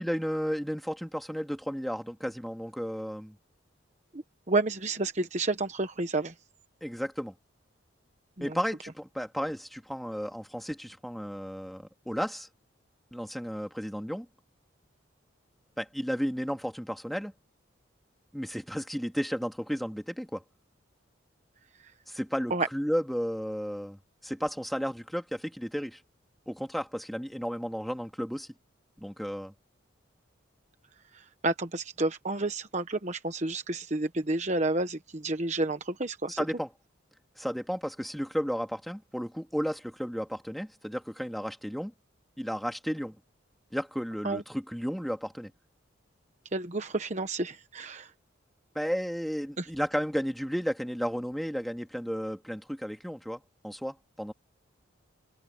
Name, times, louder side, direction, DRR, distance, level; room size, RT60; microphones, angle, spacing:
voice 1, 0.0-3.4 6.8-7.3 8.4-12.5 13.1-14.3 15.8-17.3 18.3-20.4 22.1-26.0 26.5-28.5 29.0-29.5 36.4-36.7 37.4-41.9 42.4-43.2 43.7-45.5 48.7-54.3, equal, ahead, 2.3 m, -33 dB
voice 2, 4.1-6.3 8.4-8.6 22.5-22.7 31.1-36.4 44.2-44.4 46.5-48.1 49.6-49.7, right 2 dB, 35° right, 1.1 m, -30 dB
head